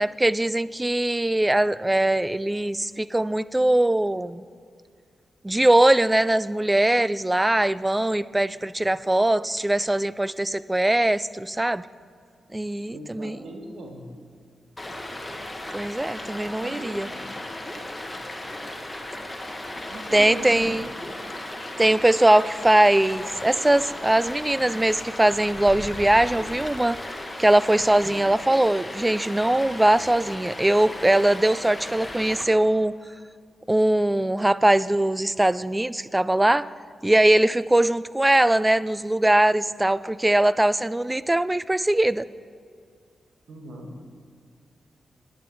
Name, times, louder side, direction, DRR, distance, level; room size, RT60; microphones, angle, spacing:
voice 1, 0.0-4.4 5.4-11.8 12.5-13.4 15.7-17.1 20.1-20.9 21.8-27.0 27.4-32.9 33.7-36.7 37.0-42.3, right 1 dB, 15° right, 18 dB, 0.3 m, -21 dB
voice 2, 12.9-14.1 16.6-17.2 19.9-20.9 43.5-43.9, right 1 dB, 80° right, 2 dB, 1.7 m, -39 dB
Stream, 14.8-32.4, left 1 dB, 20° left, 1.5 m, -36 dB
11.0 x 9.5 x 4.6 m, 2.3 s
cardioid pair, 60°, 0 cm